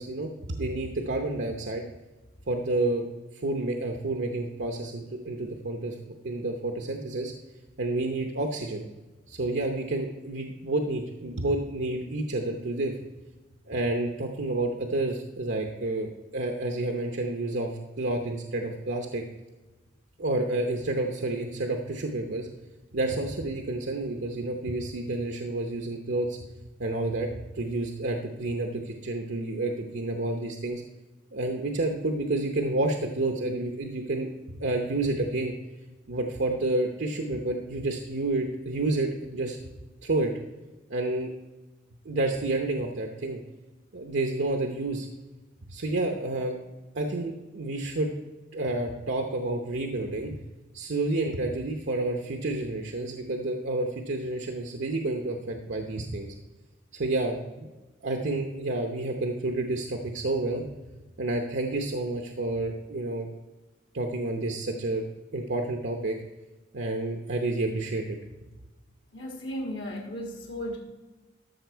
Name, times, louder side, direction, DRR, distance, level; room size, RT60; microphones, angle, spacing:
voice 1, 0.0-1.8 2.5-3.1 3.4-6.0 6.2-7.3 7.8-8.9 9.3-12.9 13.7-17.7 18.0-19.2 20.2-22.5 22.9-26.4 26.8-30.8 31.3-34.3 34.6-35.5 36.1-39.6 40.0-40.3 40.9-41.3 42.0-43.4 43.9-45.1 45.7-46.6 46.9-48.1 48.5-50.4 50.7-56.3 56.9-57.7 58.0-60.7 61.2-63.3 63.9-65.0 65.3-66.1 66.7-68.2, right 2 dB, 75° right, 3 dB, 0.8 m, -29 dB
voice 2, 69.1-70.8, equal, 90° left, 1 dB, 1.6 m, -35 dB
13.0 x 6.2 x 4.6 m, 1.2 s
head